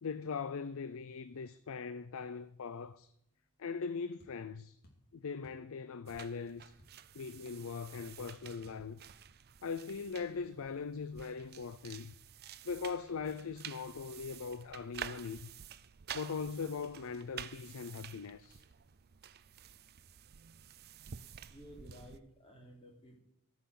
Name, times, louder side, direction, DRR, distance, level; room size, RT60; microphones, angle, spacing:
voice 1, 0.0-3.1 3.6-4.8 5.1-6.7 7.1-9.0 9.6-12.1 12.6-15.5 16.1-18.6, left 5 dB, 65° left, 0.5 m, -40 dB
sound 1, 4.2-4.4 4.8-5.1 5.4-5.7 6.1-6.3 6.6-7.1 7.3-7.5 8.0-8.2 8.6-8.8, left 1 dB, 45° left, 2.9 m, -61 dB
sound 2, 6.1-22.2, right 9 dB, 45° right, 0.5 m, -50 dB
voice 2, 21.5-23.2, equal, 25° left, 3.3 m, -54 dB
14.0 x 5.9 x 7.6 m
head